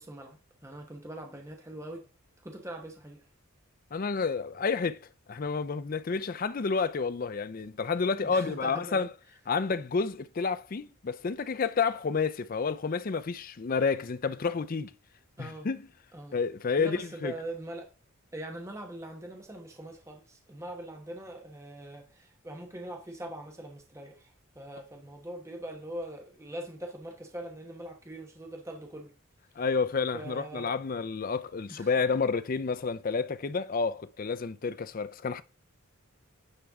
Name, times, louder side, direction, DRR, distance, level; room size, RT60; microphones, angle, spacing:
voice 1, 0.0-2.0 2.4-3.2 8.2-9.1 15.4-15.7 16.1-16.4 16.8-17.9 18.3-29.1 30.1-30.7 31.7-31.9, right 1 dB, 15° right, 1.1 m, -42 dB
voice 2, 3.9-5.0 5.3-9.1 9.5-14.9 15.4-15.9 16.3-17.3 29.6-35.4, left 5 dB, 40° left, 0.4 m, -30 dB
9.7 x 4.5 x 3.6 m
head